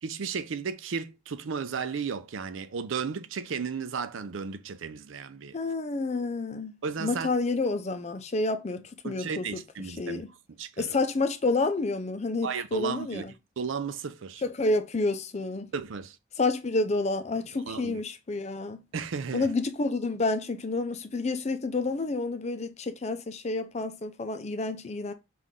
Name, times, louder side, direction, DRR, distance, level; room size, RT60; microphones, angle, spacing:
voice 1, 0.0-5.6 6.8-7.3 9.0-10.2 10.6-11.0 12.4-13.2 13.6-14.4 15.7-16.2 17.7-18.0 18.9-19.5, right 5 dB, 85° right, 0.5 m, -34 dB
voice 2, 5.5-9.6 10.0-10.3 10.8-13.3 14.4-15.7 16.4-18.8 19.3-25.1, left 3 dB, 35° left, 0.5 m, -29 dB
5.7 x 2.5 x 3.6 m
head